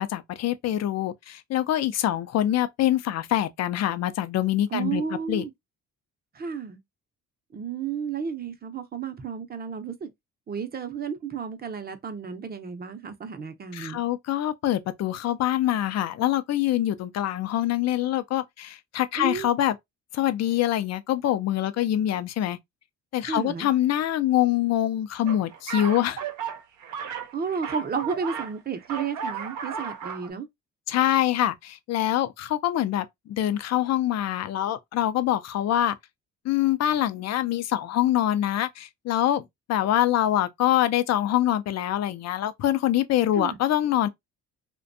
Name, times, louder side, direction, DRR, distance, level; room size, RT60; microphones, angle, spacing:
voice 1, 0.0-5.4 13.7-19.8 20.1-22.6 23.1-26.2 30.9-36.0 36.4-39.4 39.7-44.1, left 12 dB, 60° left, 0.5 m, -25 dB
voice 2, 4.7-5.5 6.4-6.8 7.5-10.1 10.5-14.0 19.2-19.5 23.2-23.7 27.3-30.5 43.4-43.6, right 6 dB, 30° right, 0.6 m, -32 dB
sound 1, 25.3-28.6 28.8-30.3, right 7 dB, 75° right, 0.7 m, -34 dB
2.5 x 2.2 x 2.5 m
cardioid pair, 90°, 30 cm